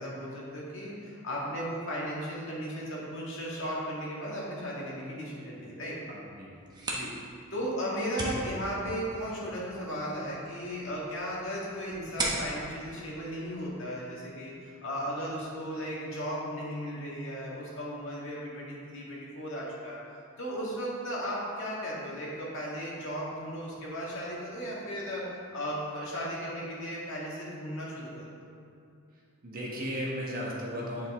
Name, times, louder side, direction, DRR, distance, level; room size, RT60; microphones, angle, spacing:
voice 1, 0.0-6.0 6.9-7.1 7.5-20.0 20.4-25.3 25.5-28.2, equal, 65° left, -5 dB, 1.8 m, -36 dB
voice 2, 6.1-6.5 29.4-31.1, equal, 45° right, -4 dB, 1.4 m, -35 dB
sound 1, 6.5-14.1, right 1 dB, 20° right, 1.0 m, -39 dB
8.8 x 5.4 x 3.7 m, 2.5 s
head